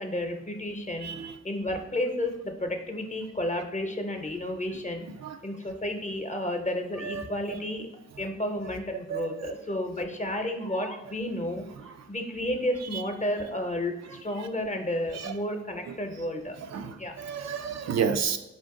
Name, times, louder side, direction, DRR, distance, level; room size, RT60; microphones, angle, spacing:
voice 1, 0.0-1.1 1.4-5.1 5.4-7.9 8.2-16.6 16.9-17.2, left 1 dB, 25° left, 4 dB, 0.8 m, -32 dB
voice 2, 1.0-1.3 5.2-5.4 7.0-7.6 9.1-9.5 11.8-11.9 12.9-13.0 15.1-15.3 15.9-16.0 16.7-18.4, right 7 dB, 65° right, 7 dB, 0.4 m, -31 dB
4.4 x 2.5 x 3.7 m, 0.93 s
cardioid pair, 40°, 29 cm